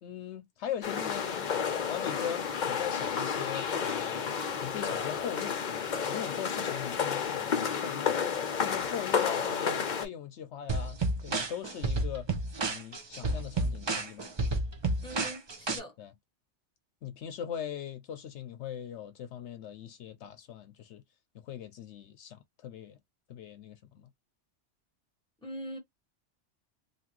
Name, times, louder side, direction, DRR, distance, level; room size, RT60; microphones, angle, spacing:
voice 1, 0.0-4.3 4.6-8.2 8.6-12.3 12.7-14.3 16.0-16.1 17.0-21.0 21.4-23.0 23.3-24.1, left 9 dB, 75° left, 0.9 m, -40 dB
sound 1, 0.8-10.1, left 7 dB, 50° left, 0.6 m, -31 dB
sound 2, 10.7-15.8, right 2 dB, 35° right, 0.4 m, -31 dB
voice 2, 15.0-15.9 25.4-25.8, equal, 5° left, 1.4 m, -41 dB
2.9 x 2.5 x 2.9 m
omnidirectional pair, 1.2 m